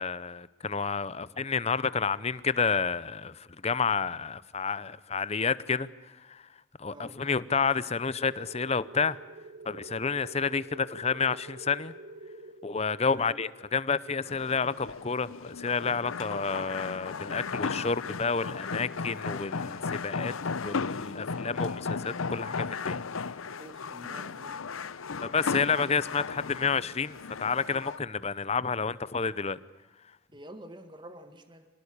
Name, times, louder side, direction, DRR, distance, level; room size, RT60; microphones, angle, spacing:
voice 1, 0.0-5.9 6.3-6.4 6.8-9.2 9.6-11.9 12.6-20.3 20.6-23.0 25.2-29.6, left 5 dB, 30° left, 18 dB, 0.7 m, -30 dB
voice 2, 6.9-7.2 13.1-13.3 23.6-24.6 30.3-31.7, right 1 dB, 20° right, 8 dB, 1.9 m, -47 dB
sound 1, 8.2-16.5, right 2 dB, 55° right, 2.3 m, -49 dB
sound 2, 14.3-28.0, left 5 dB, 85° left, 0.8 m, -35 dB
26.5 x 18.5 x 8.7 m, 1.2 s
head